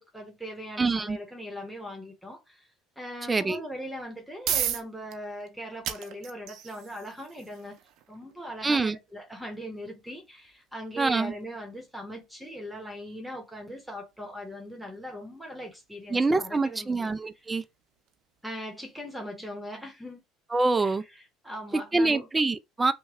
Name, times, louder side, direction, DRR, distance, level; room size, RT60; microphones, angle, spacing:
voice 1, 0.0-2.7 3.0-7.8 8.1-17.1 18.4-20.2 20.8-20.9 21.4-22.3, equal, ahead, 1.2 m, -40 dB
voice 2, 0.8-1.2 3.3-3.6 8.6-9.0 11.0-11.3 16.1-17.6 20.5-21.0 21.7-22.9, right 3 dB, 20° right, 0.3 m, -25 dB
sound 1, 4.0-18.8, right 10 dB, 65° right, 0.5 m, -40 dB
3.1 x 2.2 x 3.5 m
supercardioid pair, 95°, 0 cm